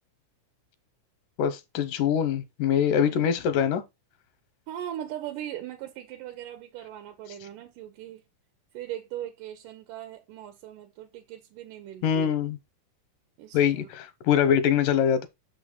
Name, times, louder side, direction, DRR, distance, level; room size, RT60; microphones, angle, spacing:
voice 1, 1.4-3.8 12.0-12.6 13.5-15.3, left 8 dB, 85° left, 2.6 m, -24 dB
voice 2, 3.0-3.4 4.7-8.2 8.7-12.3 13.4-13.9, right 12 dB, 85° right, 2.5 m, -39 dB
6.5 x 5.7 x 3.9 m
omnidirectional pair, 3.7 m